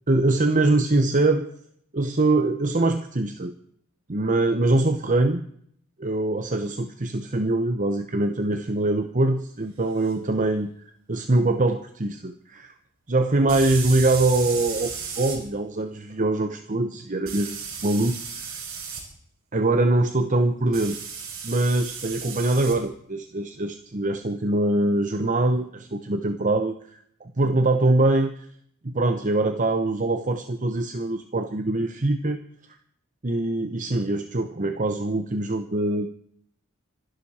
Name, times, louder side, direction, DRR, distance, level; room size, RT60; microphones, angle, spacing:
voice 1, 0.1-1.5 1.9-3.5 4.1-5.4 6.0-10.7 11.1-12.7 13.1-18.6 19.5-21.0 21.4-28.5 28.8-32.4 33.2-36.1, right 2 dB, 35° right, 8 dB, 1.0 m, -23 dB
sound 1, 10.0-10.1 13.5-15.4 17.2-19.0 20.7-22.8, right 6 dB, 75° right, 6.2 m, -34 dB
26.0 x 11.5 x 4.4 m, 0.64 s
head